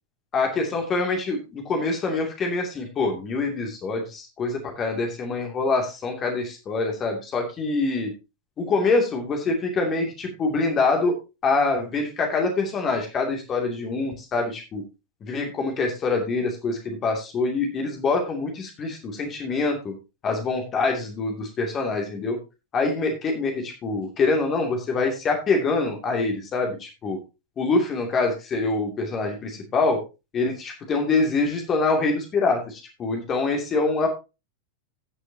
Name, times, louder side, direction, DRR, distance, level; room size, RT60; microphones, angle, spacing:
voice 1, 0.3-8.1 8.6-11.1 11.4-14.8 15.2-19.9 20.2-22.4 22.7-27.2 27.6-30.0 30.3-34.1, left 3 dB, 25° left, 3 dB, 2.7 m, -25 dB
18.0 x 6.4 x 2.9 m, 0.28 s
figure-of-eight pair, 90°, 0 cm